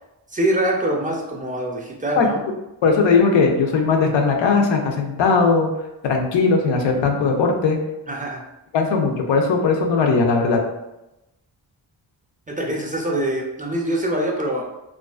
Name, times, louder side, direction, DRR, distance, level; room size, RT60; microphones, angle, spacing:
voice 1, 0.3-2.4 8.1-8.4 12.5-14.6, right 1 dB, 20° right, -1 dB, 0.4 m, -24 dB
voice 2, 2.8-5.7 6.0-7.8 8.7-10.6, left 4 dB, 80° left, 2 dB, 0.6 m, -18 dB
2.4 x 2.3 x 2.3 m, 0.94 s
cardioid pair, 70°, 44 cm